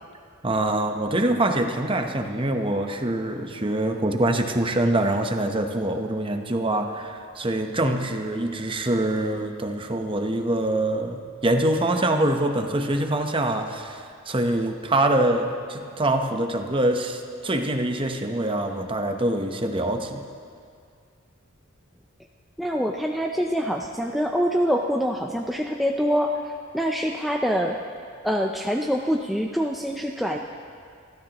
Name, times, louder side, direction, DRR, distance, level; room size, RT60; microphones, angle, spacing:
voice 1, 0.4-20.3, right 1 dB, 25° right, 5 dB, 0.9 m, -24 dB
voice 2, 22.6-27.8 28.2-30.4, equal, ahead, 0 dB, 0.5 m, -25 dB
28.5 x 13.0 x 3.0 m, 2.2 s
head